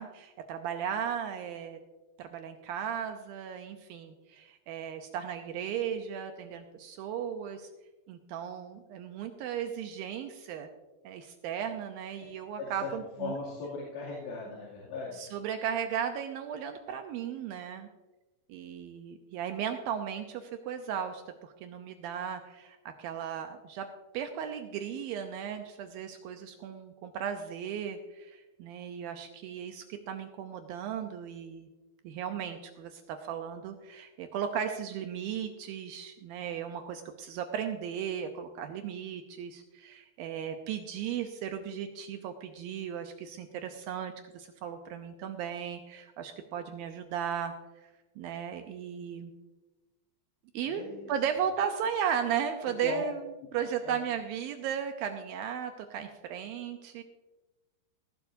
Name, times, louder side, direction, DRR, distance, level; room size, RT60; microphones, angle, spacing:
voice 1, 0.0-1.8 2.2-7.7 8.1-10.7 11.0-13.3 15.2-17.9 18.5-23.9 24.1-31.7 32.0-47.5 47.8-47.9 48.2-49.3 50.5-50.8 51.1-53.2 53.5-57.0, right 8 dB, 80° right, 6 dB, 2.1 m, -36 dB
voice 2, 12.6-12.9 13.2-15.2 50.6-51.1 52.8-53.0 53.6-54.0, left 4 dB, 90° left, -8 dB, 4.9 m, -38 dB
19.0 x 12.0 x 2.7 m, 1.1 s
omnidirectional pair, 4.9 m